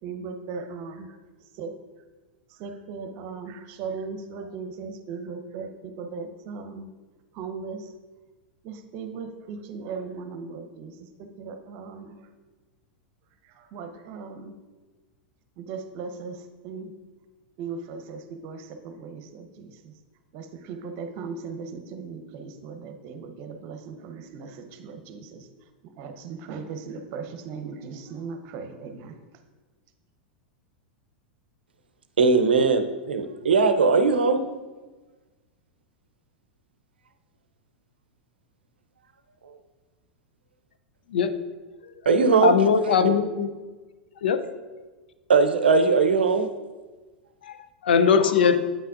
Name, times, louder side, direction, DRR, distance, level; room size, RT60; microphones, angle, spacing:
voice 1, 0.0-1.2 1.5-1.7 2.5-6.9 7.3-7.9 8.6-12.3 13.4-14.6 15.6-16.9 17.6-19.9 20.3-25.5 25.8-29.2, right 5 dB, 50° right, 7 dB, 0.8 m, -38 dB
voice 2, 32.2-34.4 42.1-42.6 45.3-46.5, right 4 dB, 80° right, 9 dB, 0.6 m, -19 dB
voice 3, 42.4-43.5 44.2-44.4 47.4-47.5 47.8-48.6, left 6 dB, 75° left, 10 dB, 0.5 m, -20 dB
8.5 x 5.7 x 2.5 m, 1.3 s
hypercardioid pair, 95°, 5 cm